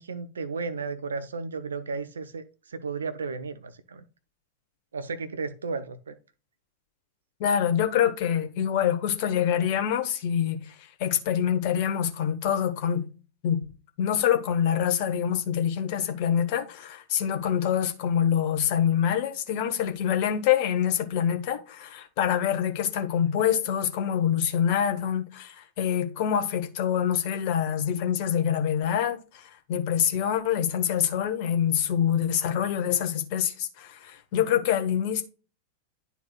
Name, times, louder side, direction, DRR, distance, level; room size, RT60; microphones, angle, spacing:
voice 1, 0.0-4.0 4.9-6.1, right 4 dB, 70° right, 0.6 m, -34 dB
voice 2, 7.4-13.0 13.4-13.6 14.0-35.2, left 9 dB, 45° left, 1.3 m, -25 dB
11.5 x 4.1 x 2.3 m
figure-of-eight pair, 90°, 0 cm